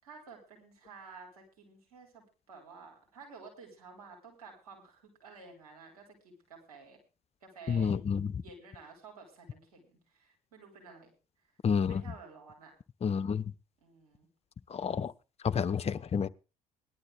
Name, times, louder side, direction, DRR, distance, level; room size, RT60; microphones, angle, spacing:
voice 1, 0.0-7.0 7.4-11.1 11.9-12.7 13.8-14.3 15.5-15.9, right 4 dB, 75° right, 4.7 m, -52 dB
voice 2, 7.7-8.3 11.6-12.0 13.0-13.4 14.7-15.1 15.4-16.3, left 6 dB, 35° left, 0.7 m, -29 dB
19.0 x 11.5 x 3.5 m
figure-of-eight pair, 50°, 19 cm